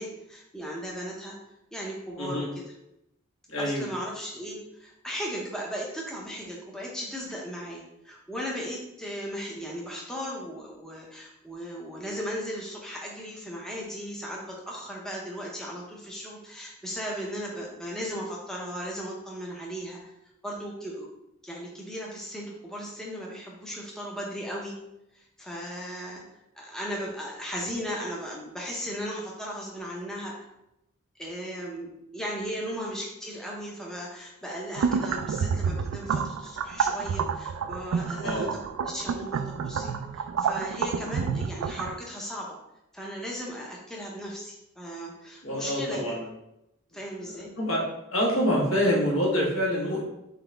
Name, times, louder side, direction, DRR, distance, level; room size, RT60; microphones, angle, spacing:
voice 1, 0.0-1.3 1.7-2.5 3.6-20.1 20.4-21.1 21.4-24.7 25.1-26.2 26.5-30.5 31.2-38.5 38.8-42.6 42.9-46.2 46.9-47.5, equal, 5° left, -3 dB, 0.6 m, -36 dB
voice 2, 2.2-2.5 3.5-3.9 38.0-38.5 45.4-46.3 47.2-47.8 48.1-50.0, equal, 70° left, -3 dB, 1.4 m, -26 dB
sound 1, 34.7-42.0, right 6 dB, 80° right, 0.3 m, -29 dB
4.1 x 3.9 x 3.3 m, 0.87 s
head